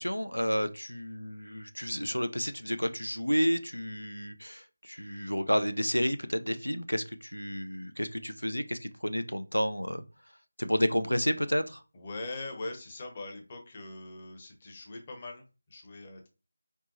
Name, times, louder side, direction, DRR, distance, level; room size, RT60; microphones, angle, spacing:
voice 1, 0.0-10.0 10.6-11.8, equal, 90° left, 0.5 m, -31 dB
voice 2, 11.9-16.3, left 2 dB, 25° left, 0.8 m, -42 dB
4.4 x 3.0 x 2.6 m
figure-of-eight pair, 165°, 0 cm